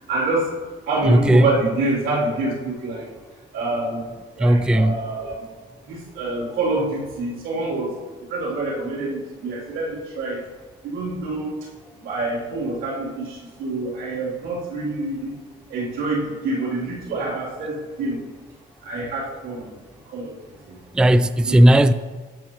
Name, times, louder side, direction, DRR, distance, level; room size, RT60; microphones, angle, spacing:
voice 1, 0.1-0.5 0.9-3.1 3.5-4.0 4.4-5.4 5.9-7.9 8.3-10.4 10.8-11.6 12.0-15.3 15.7-18.3 18.8-19.7 20.1-20.3 20.7-20.8 21.4-21.7, right 2 dB, 90° right, 3.4 m, -26 dB
voice 2, 1.1-1.5 4.4-5.0 20.9-21.9, right 1 dB, 5° right, 0.3 m, -15 dB
13.5 x 8.3 x 3.1 m
cardioid pair, 90°, 20 cm